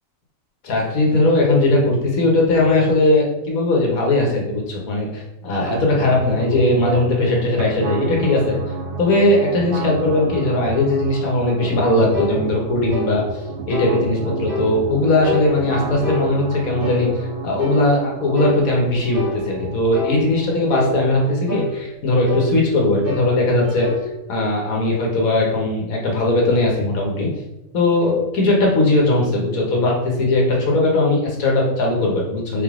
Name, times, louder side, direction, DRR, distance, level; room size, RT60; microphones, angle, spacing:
voice 1, 0.6-8.6 9.0-13.2 13.7-17.1 17.4-23.9 24.3-27.3 27.7-32.6, left 2 dB, 90° left, -2 dB, 1.6 m, -19 dB
sound 1, 5.6-21.6, right 3 dB, 60° right, 0.9 m, -31 dB
sound 2, 12.1-12.4 12.9-13.1 13.7-13.9 14.5-14.7 15.2-15.5 16.0-16.3 16.8-17.1 17.6-17.8 18.4-18.6 19.1-19.4 19.9-20.2 20.7-20.9 21.5-21.7 22.3-22.5 23.0-23.3 23.6-24.1, equal, 15° left, 1.6 m, -26 dB
3.9 x 3.6 x 3.7 m, 0.94 s
omnidirectional pair, 1.4 m